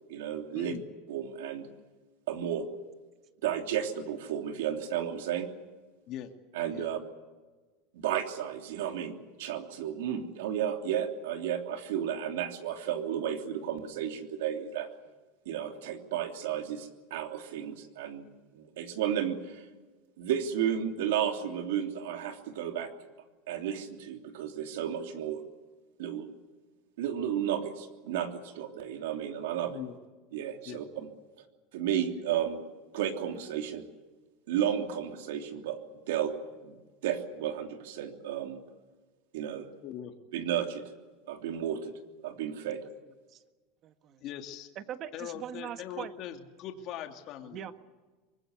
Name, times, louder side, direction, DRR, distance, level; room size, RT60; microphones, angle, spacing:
voice 1, 0.1-0.7 1.1-1.7 2.3-2.7 3.4-5.5 6.5-7.0 7.9-14.9 15.4-18.3 18.5-19.6 20.2-22.9 23.5-25.4 26.0-26.3 27.0-29.8 30.3-30.8 31.7-32.6 32.9-33.9 34.5-35.8 36.1-36.3 36.6-38.6 39.3-39.7 40.3-40.8 41.2-41.9 42.2-42.8, right 9 dB, 85° right, 5 dB, 3.1 m, -33 dB
voice 2, 39.8-40.1 44.2-44.7 45.1-47.6, left 10 dB, 45° left, 4 dB, 2.6 m, -41 dB
voice 3, 43.8-44.2 44.7-46.1 47.5-47.7, right 10 dB, 40° right, 10 dB, 1.6 m, -41 dB
24.5 x 21.0 x 8.3 m, 1.3 s
supercardioid pair, 145°, 0 cm